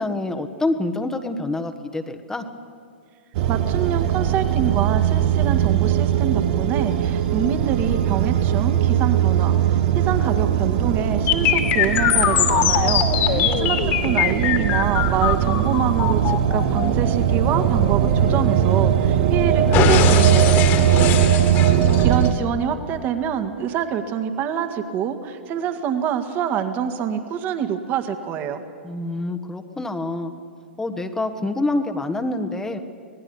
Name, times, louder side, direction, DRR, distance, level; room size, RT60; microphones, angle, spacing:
voice 1, 0.0-2.4 12.8-13.6 28.8-30.3 30.8-32.8, left 2 dB, 10° left, 6 dB, 1.4 m, -27 dB
sound 1, 3.3-22.3, right 9 dB, 45° right, 1.3 m, -20 dB
voice 2, 3.5-21.2 22.0-28.6, right 8 dB, 30° right, 8 dB, 1.8 m, -26 dB
sound 2, 11.3-19.2 19.7-22.3, left 9 dB, 35° left, 2.4 m, -22 dB
25.5 x 19.5 x 7.1 m, 2.2 s
figure-of-eight pair, 110°, 6 cm